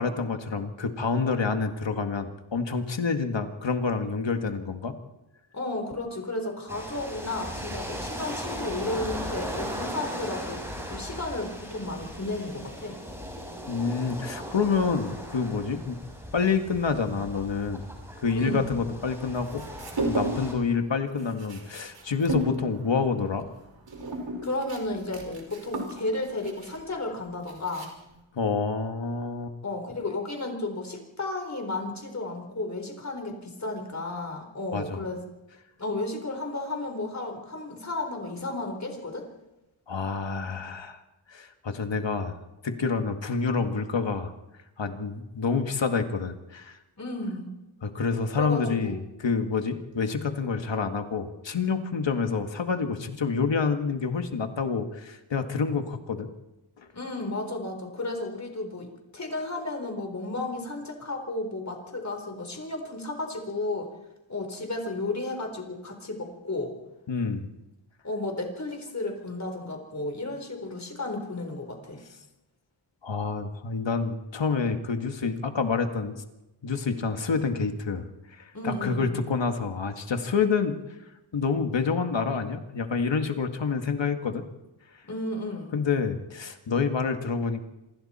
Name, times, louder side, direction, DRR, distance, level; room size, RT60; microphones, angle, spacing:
voice 1, 0.0-5.0 13.7-16.0 16.3-17.8 18.2-19.6 20.0-23.5 28.4-29.6 34.7-35.0 39.9-41.0 41.3-42.4 42.6-44.3 44.8-46.8 47.8-56.3 67.1-67.5 73.0-76.2 76.6-80.8 81.3-84.5 85.7-87.6, left 5 dB, 65° left, 5 dB, 2.0 m, -28 dB
voice 2, 5.5-10.6 10.9-13.0 18.3-18.7 24.4-27.9 29.6-35.2 35.8-39.3 47.0-47.5 48.4-49.1 56.9-63.9 64.3-66.7 68.0-72.0 78.5-79.1 85.0-85.7, left 2 dB, 35° left, 4 dB, 4.3 m, -33 dB
sound 1, 6.7-20.5, equal, 5° right, 6.3 m, -38 dB
sound 2, 19.4-20.6 20.9-28.2, right 1 dB, 60° right, 5.6 m, -34 dB
27.5 x 25.5 x 4.4 m, 0.99 s
wide cardioid pair, 145°, 48 cm